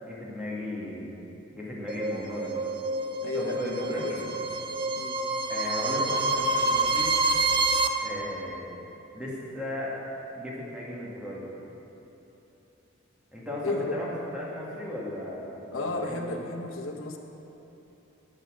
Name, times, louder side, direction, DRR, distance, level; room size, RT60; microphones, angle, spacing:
voice 1, 0.0-1.1 1.5-2.6 3.3-4.2 5.5-7.1 8.0-8.8 9.1-9.9 10.3-11.5 13.3-16.3, left 1 dB, 5° right, -6 dB, 2.1 m, -35 dB
sound 1, 1.9-7.9, right 2 dB, 25° right, 0.5 m, -27 dB
voice 2, 3.2-4.4 5.0-5.2 13.6-14.0 15.7-17.2, left 3 dB, 85° left, 4 dB, 0.9 m, -33 dB
10.0 x 8.7 x 6.4 m, 3.0 s
head